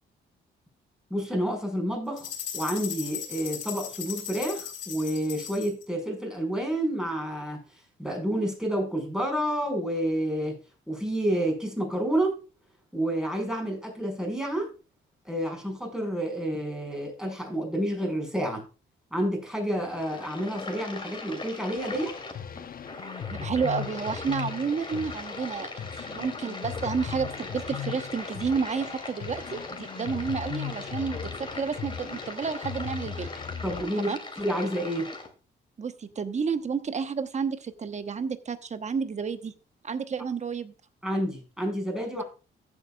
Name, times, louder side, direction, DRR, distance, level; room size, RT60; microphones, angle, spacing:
voice 1, 1.1-7.6 8.0-10.6 10.9-12.4 12.9-14.7 15.2-18.6 19.1-22.1 33.6-35.1 41.0-42.2, right 1 dB, 5° right, 2 dB, 5.5 m, -29 dB
sound 1, 2.2-5.8, left 9 dB, 80° left, 3.9 m, -37 dB
sound 2, 19.7-35.3, left 3 dB, 25° left, 3.0 m, -40 dB
sound 3, 21.8-33.8, left 8 dB, 45° left, 1.0 m, -38 dB
voice 2, 23.3-33.3 34.0-34.2 35.8-39.5 39.8-40.7, right 5 dB, 35° right, 10 dB, 1.1 m, -31 dB
14.5 x 8.6 x 2.4 m, 0.33 s
cardioid pair, 90°, 20 cm